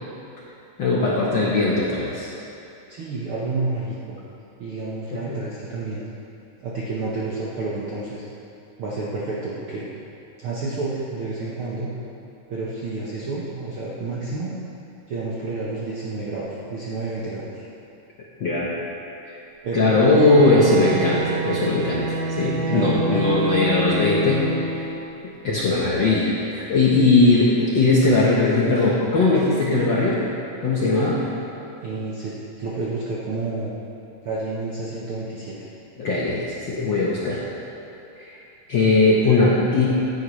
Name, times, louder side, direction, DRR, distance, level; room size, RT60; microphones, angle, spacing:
voice 1, 0.8-2.3 5.1-5.4 18.4-18.7 19.2-19.4 19.7-24.9 25.4-30.2 30.6-31.3 36.0-37.5 38.2-38.3 38.7-39.9, left 3 dB, 80° left, -5 dB, 1.0 m, -19 dB
voice 2, 2.9-4.2 4.6-6.0 6.6-8.2 8.8-9.9 10.4-11.9 12.5-14.5 15.1-17.6 19.6-20.2 22.7-23.0 31.8-33.7 34.2-35.7, right 3 dB, 60° right, -7 dB, 1.4 m, -29 dB
Bowed string instrument, 19.9-25.2, right 2 dB, 80° right, 2.4 m, -27 dB
16.0 x 9.5 x 3.2 m, 2.8 s
omnidirectional pair, 3.8 m